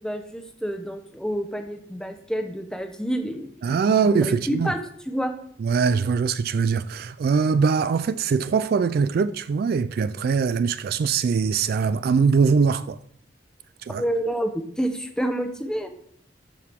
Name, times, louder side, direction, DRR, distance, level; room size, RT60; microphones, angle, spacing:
voice 1, 0.0-4.8 5.1-5.3 14.0-15.9, equal, 5° left, 0.9 m, -28 dB
voice 2, 3.6-4.7 5.6-13.0 13.8-14.0, right 5 dB, 55° right, 0.3 m, -22 dB
12.5 x 4.7 x 3.6 m
head